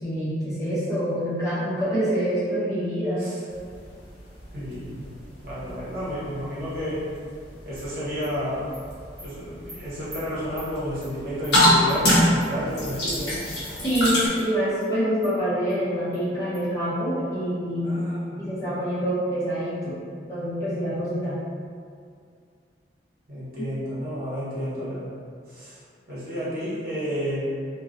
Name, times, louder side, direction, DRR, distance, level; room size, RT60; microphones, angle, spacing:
voice 1, 0.0-3.3 13.8-18.0 18.4-20.0 20.3-21.4 23.6-23.7, equal, 20° left, -12 dB, 0.8 m, -26 dB
sound 1, 3.5-14.3, left 1 dB, 65° left, 0.7 m, -27 dB
voice 2, 4.5-5.0 5.4-7.0 7.6-8.6 9.2-13.4 17.8-18.5 23.3-25.1 25.5-25.8 26.1-27.5, equal, 55° right, -11 dB, 0.9 m, -31 dB
Animal, 7.7-7.8 8.2-8.3 8.7-8.8 9.2-9.3 9.7-9.8 10.1-10.2 10.6-10.7 11.0-11.1 11.4-11.5 11.9-12.0 12.4-12.5 12.8-12.9 13.3-13.4 13.6-14.0 14.4-14.5 14.8-14.9 15.2-15.3 15.7-15.8 16.1-16.2 16.5-16.6, right 1 dB, 20° right, 0.7 m, -44 dB
2.3 x 2.2 x 2.5 m, 2.2 s
head